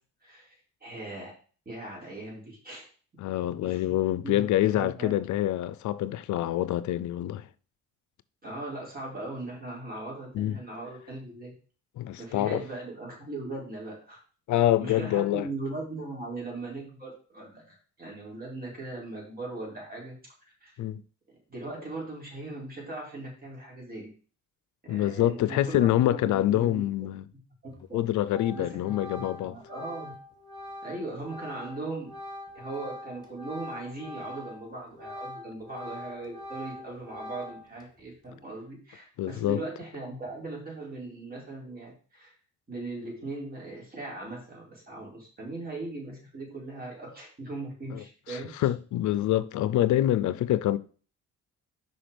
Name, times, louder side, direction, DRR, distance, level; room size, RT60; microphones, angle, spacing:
voice 1, 0.2-0.5 0.8-1.3 1.6-2.9 3.6-3.8 4.2-4.5 4.7-5.1 8.4-11.5 12.2-14.2 14.5-20.2 20.6-20.7 21.5-24.1 24.9-26.8 27.3-27.4 27.9-28.0 28.5-30.1 30.8-32.1 32.5-42.3 42.7-48.7, right 2 dB, 30° right, 4.6 m, -39 dB
voice 2, 3.2-7.4 10.3-10.6 12.0-12.6 14.5-15.5 20.8-21.0 24.9-27.3 27.9-29.6 39.2-39.6 47.9-48.0 48.3-50.8, left 13 dB, 75° left, 0.5 m, -26 dB
Organ, 27.7-28.0 28.3-34.6 34.9-37.8, left 1 dB, 15° left, 2.2 m, -43 dB
5.9 x 5.3 x 5.2 m
cardioid pair, 90°, 30 cm